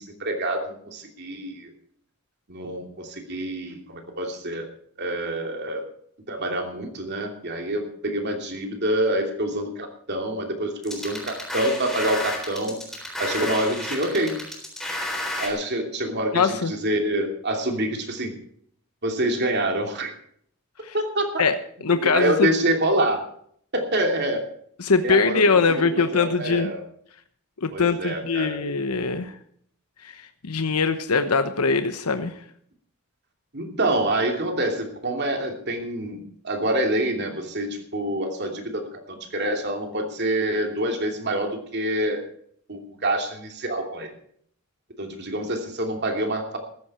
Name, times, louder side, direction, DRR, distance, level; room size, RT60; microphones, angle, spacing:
voice 1, 0.0-1.7 2.5-4.7 5.0-5.8 6.3-12.8 13.2-14.4 15.4-18.3 19.0-20.1 20.9-21.3 21.9-23.2 23.7-24.4 25.0-25.4 25.7-26.8 27.7-28.6 33.5-42.2 42.7-44.1 45.0-46.6, right 1 dB, 50° right, 4 dB, 2.8 m, -26 dB
sound 1, 10.8-15.5, left 1 dB, ahead, 3.7 m, -31 dB
voice 2, 16.3-16.7 20.8-20.9 21.4-21.5 21.8-22.5 24.8-26.7 27.6-29.4 30.0-32.3, left 4 dB, 85° left, 9 dB, 1.0 m, -22 dB
14.5 x 14.0 x 4.3 m, 0.63 s
head